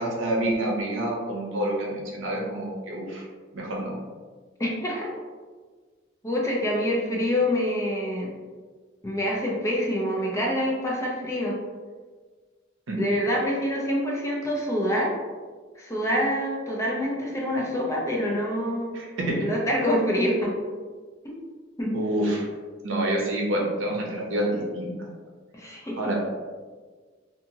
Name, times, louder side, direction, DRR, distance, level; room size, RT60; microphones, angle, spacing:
voice 1, 0.0-3.3 3.5-3.9 12.9-13.0 18.9-19.5 21.9-22.5 22.8-24.9 26.0-26.2, right 1 dB, 85° right, -1 dB, 0.6 m, -27 dB
voice 2, 4.6-5.1 6.2-8.3 9.0-11.6 13.0-15.1 15.8-18.9 19.4-20.5 21.2-21.3 21.8-22.0 25.5-26.0, equal, 15° left, -3 dB, 0.5 m, -26 dB
2.7 x 2.4 x 2.7 m, 1.5 s
head